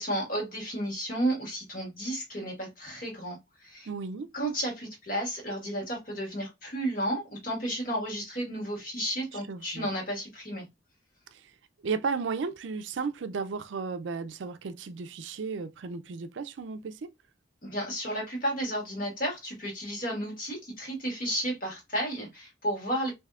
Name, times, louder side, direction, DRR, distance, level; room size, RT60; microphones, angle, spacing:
voice 1, 0.0-3.9 4.3-10.7 17.6-23.1, right 1 dB, 45° left, 1.5 m, -32 dB
voice 2, 3.9-4.3 9.5-9.9 11.3-11.5 11.8-17.1, right 5 dB, 75° right, 0.4 m, -34 dB
3.4 x 2.7 x 2.3 m
head